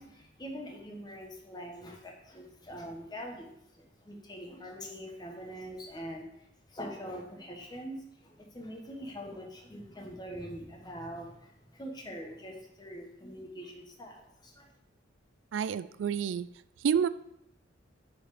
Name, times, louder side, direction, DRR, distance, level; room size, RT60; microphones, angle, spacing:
voice 1, 0.0-14.7, equal, 20° left, 1 dB, 1.2 m, -44 dB
voice 2, 15.5-16.5 16.8-17.1, right 7 dB, 70° right, 16 dB, 0.3 m, -29 dB
7.0 x 4.2 x 4.8 m, 0.77 s
head